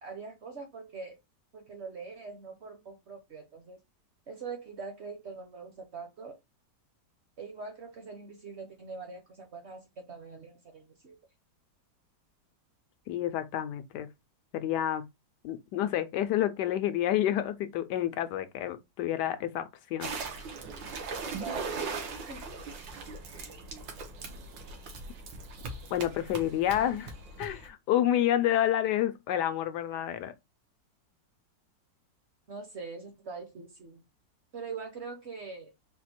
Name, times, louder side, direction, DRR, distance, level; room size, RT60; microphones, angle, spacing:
voice 1, 0.0-1.2 1.5-3.8 4.3-6.4 7.4-11.2 21.3-21.8 22.3-22.5 26.8-26.9 32.5-34.0 34.5-35.7, right 4 dB, 50° right, 0.9 m, -43 dB
voice 2, 13.1-14.1 14.5-15.1 15.4-20.1 25.9-27.1 27.4-30.3, left 12 dB, 75° left, 1.1 m, -29 dB
sound 1, 20.0-27.7, right 4 dB, 90° right, 1.7 m, -39 dB
4.4 x 2.4 x 4.2 m
omnidirectional pair, 1.9 m